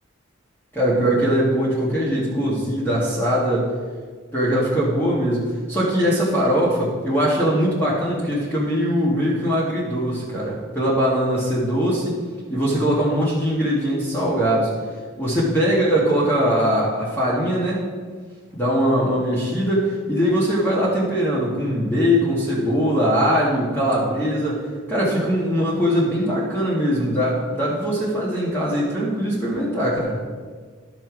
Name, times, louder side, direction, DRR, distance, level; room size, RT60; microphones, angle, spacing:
voice 1, 0.7-3.7 4.3-12.2 12.5-14.7 15.2-17.8 18.5-30.2, equal, 10° left, -7 dB, 1.9 m, -21 dB
12.0 x 5.8 x 4.7 m, 1.5 s
head